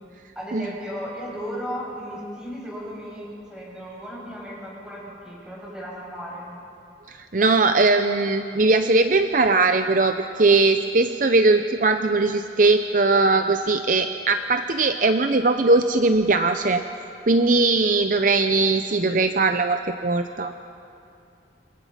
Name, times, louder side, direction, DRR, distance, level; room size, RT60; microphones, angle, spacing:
voice 1, 0.3-6.6, equal, 5° right, -5 dB, 8.0 m, -35 dB
voice 2, 7.1-16.8 17.3-20.5, right 3 dB, 45° right, 8 dB, 0.7 m, -20 dB
29.0 x 26.5 x 5.9 m, 2.6 s
head